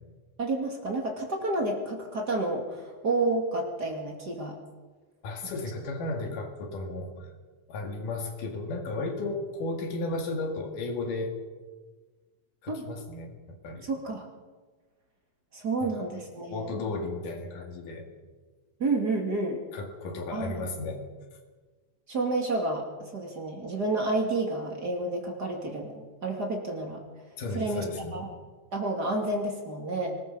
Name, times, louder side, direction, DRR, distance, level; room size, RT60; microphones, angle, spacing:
voice 1, 0.4-4.6 5.4-5.5 12.7-12.9 13.8-14.2 15.5-16.8 18.8-19.6 20.3-20.6 22.1-27.0 27.5-27.9 28.1-28.3 28.7-30.1, right 2 dB, 35° right, 1 dB, 2.6 m, -30 dB
voice 2, 5.2-7.3 7.7-11.4 12.6-13.9 15.8-16.1 16.5-18.1 19.7-21.1 27.4-28.2, left 2 dB, 90° left, 4 dB, 3.8 m, -34 dB
24.5 x 20.0 x 5.5 m, 1.4 s
omnidirectional pair, 3.6 m